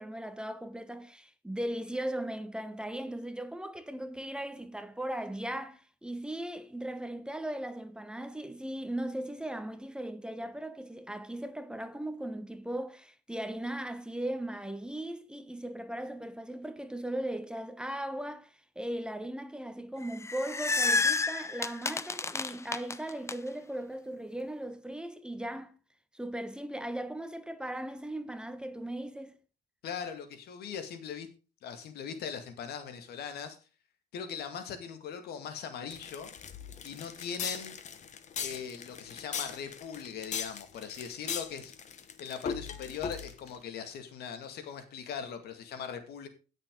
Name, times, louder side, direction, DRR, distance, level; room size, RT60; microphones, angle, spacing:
voice 1, 0.0-25.7 26.1-29.4, right 1 dB, 5° right, 1.0 m, -38 dB
sound 1, 20.0-23.3, left 3 dB, 15° left, 0.6 m, -30 dB
voice 2, 29.8-31.3 31.6-33.6 34.1-36.3 36.8-37.7 38.4-41.7 42.2-46.3, left 7 dB, 70° left, 2.2 m, -40 dB
sound 2, 35.9-43.6, left 6 dB, 45° left, 1.3 m, -39 dB
17.0 x 6.6 x 3.9 m
cardioid pair, 110°, 17 cm